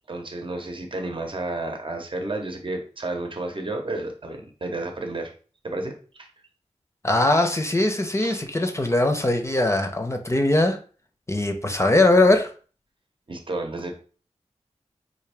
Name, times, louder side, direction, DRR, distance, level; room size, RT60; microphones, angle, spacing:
voice 1, 0.1-5.3 5.6-5.9 6.2-6.3 8.2-8.4 13.3-13.9, right 2 dB, 45° right, 4 dB, 0.8 m, -31 dB
voice 2, 7.0-10.8 11.3-12.5, left 2 dB, 25° left, 5 dB, 0.6 m, -21 dB
3.7 x 2.6 x 3.4 m, 0.39 s
cardioid pair, 40°, 12 cm